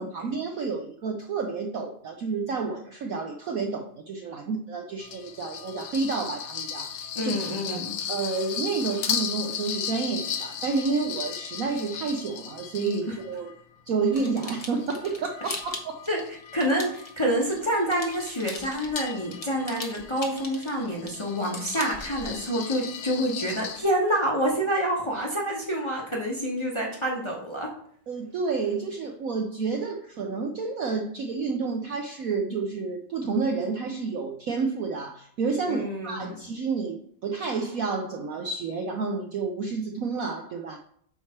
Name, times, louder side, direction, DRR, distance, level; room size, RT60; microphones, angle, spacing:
voice 1, 0.0-7.3 7.7-7.8 8.1-13.5 13.9-16.1 28.1-40.8, right 4 dB, 85° right, 3 dB, 0.7 m, -30 dB
sound 1, 5.0-13.5 14.1-23.8, left 8 dB, 90° left, 1.7 m, -36 dB
voice 2, 7.1-8.0 16.1-27.8 35.7-36.4, equal, 20° left, -3 dB, 0.9 m, -27 dB
sound 2, 14.1-17.6 17.9-22.4, left 2 dB, 45° left, 0.4 m, -40 dB
8.7 x 3.2 x 5.8 m, 0.63 s
omnidirectional pair, 2.4 m